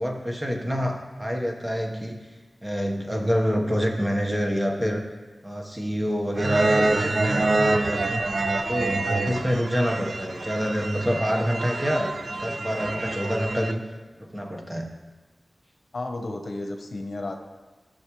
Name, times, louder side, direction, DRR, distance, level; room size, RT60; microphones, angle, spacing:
voice 1, 0.0-2.2 2.6-5.0 5.4-8.1 8.7-13.8 14.2-14.9, equal, 15° right, 1 dB, 1.3 m, -27 dB
sound 1, 6.4-13.7, right 2 dB, 65° right, 0.5 m, -26 dB
voice 2, 8.4-8.8 15.9-17.3, left 2 dB, 60° left, 4 dB, 1.0 m, -33 dB
15.5 x 6.3 x 3.2 m, 1.3 s
wide cardioid pair, 85°, 0 cm